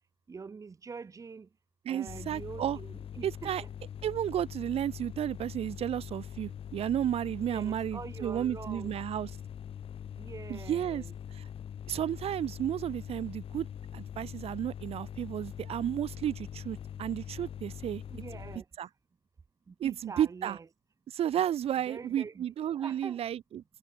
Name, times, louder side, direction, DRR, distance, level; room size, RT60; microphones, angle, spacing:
voice 1, 0.3-1.5 1.9-3.7 7.4-8.9 10.2-11.1 18.1-18.6 19.7-20.7 21.9-23.2, right 5 dB, 25° right, 6.2 m, -45 dB
voice 2, 1.8-2.8 3.2-3.6 4.0-9.3 10.5-11.0 11.3-11.5 11.9-13.7 13.9-18.0 18.8-18.9 19.8-20.6 21.1-23.6, right 10 dB, 55° right, 0.9 m, -32 dB
sound 1, 2.1-18.6, left 9 dB, 50° left, 6.1 m, -43 dB
cardioid pair, 160°, 12 cm